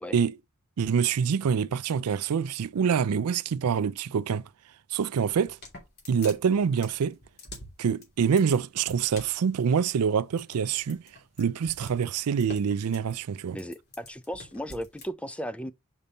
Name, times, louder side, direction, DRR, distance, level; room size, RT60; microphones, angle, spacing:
voice 1, 0.8-4.4 4.9-5.6 6.1-7.2 7.8-11.0 11.4-13.6, right 7 dB, 85° right, 0.4 m, -26 dB
sound 1, 5.3-15.1, left 2 dB, 45° left, 2.9 m, -47 dB
voice 2, 13.5-15.7, equal, 5° left, 0.4 m, -36 dB
5.5 x 5.2 x 4.1 m
head